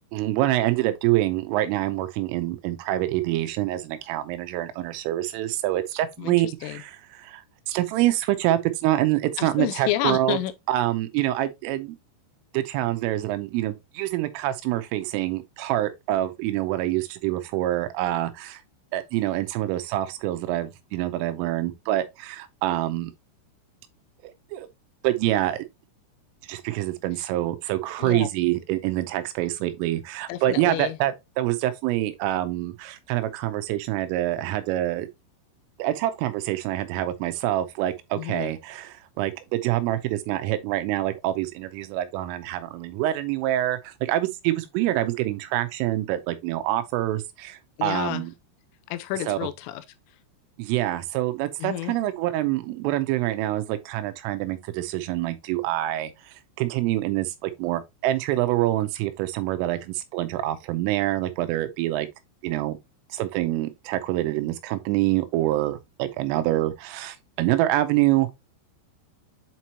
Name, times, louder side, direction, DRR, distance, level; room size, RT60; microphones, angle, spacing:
voice 1, 0.1-10.4 10.7-12.0 12.5-18.6 18.9-23.1 24.2-24.7 25.0-25.7 26.5-35.1 35.8-48.3 49.3-49.5 50.6-62.1 62.4-62.8 63.1-68.3, right 15 dB, 85° right, 3.3 m, -26 dB
voice 2, 6.2-6.8 9.4-10.5 28.0-28.3 30.3-31.0 38.2-38.5 47.8-48.2 48.9-49.8 51.6-51.9, left 14 dB, 85° left, 3.3 m, -30 dB
8.2 x 4.5 x 2.8 m
omnidirectional pair, 5.7 m